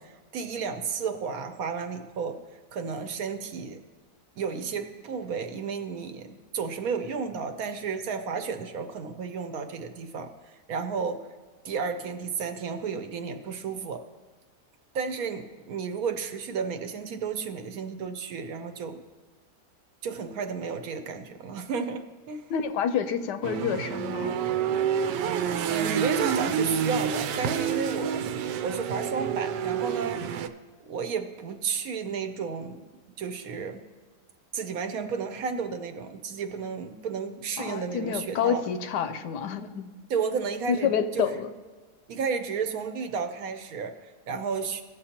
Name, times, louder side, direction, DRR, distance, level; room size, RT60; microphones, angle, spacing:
voice 1, 0.0-2.4 2.7-3.8 4.4-11.3 11.6-14.0 14.9-19.0 20.0-22.4 25.7-28.2 28.6-30.2 30.8-32.8 33.2-33.8 34.5-38.6 40.1-41.4 42.1-43.9 44.3-44.8, right 5 dB, 65° right, 7 dB, 1.0 m, -32 dB
voice 2, 22.5-24.4 37.6-39.9 40.7-41.5, left 7 dB, 85° left, 10 dB, 1.2 m, -28 dB
sound 1, 23.4-30.5, right 7 dB, 85° right, 1.2 m, -28 dB
16.5 x 6.7 x 2.9 m, 1.4 s
omnidirectional pair, 1.8 m